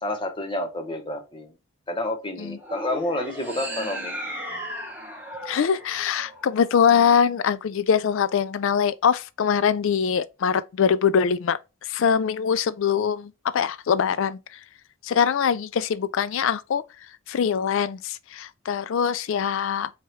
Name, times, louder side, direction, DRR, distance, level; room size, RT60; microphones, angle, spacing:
voice 1, 0.0-1.5 1.9-4.2, left 1 dB, 20° left, 0.7 m, -29 dB
sound 1, 2.6-6.9, equal, 10° right, 1.1 m, -36 dB
voice 2, 5.5-14.6 15.0-16.8 17.3-19.9, left 7 dB, 60° left, 0.3 m, -23 dB
4.6 x 2.9 x 3.1 m
head